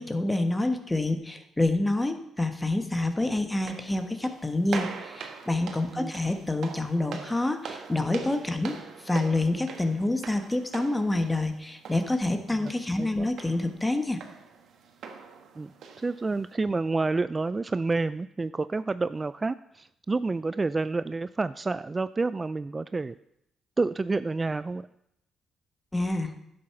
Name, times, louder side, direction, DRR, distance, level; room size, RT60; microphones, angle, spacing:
voice 1, 0.0-14.2 25.9-26.3, left 2 dB, 15° left, 7 dB, 1.3 m, -27 dB
sound 1, 3.5-16.5, right 6 dB, 70° right, 1.6 m, -43 dB
voice 2, 13.0-13.3 15.6-23.2 23.8-24.9, right 3 dB, 25° right, 14 dB, 0.3 m, -29 dB
11.0 x 7.8 x 5.8 m, 0.79 s
cardioid pair, 90°, 0 cm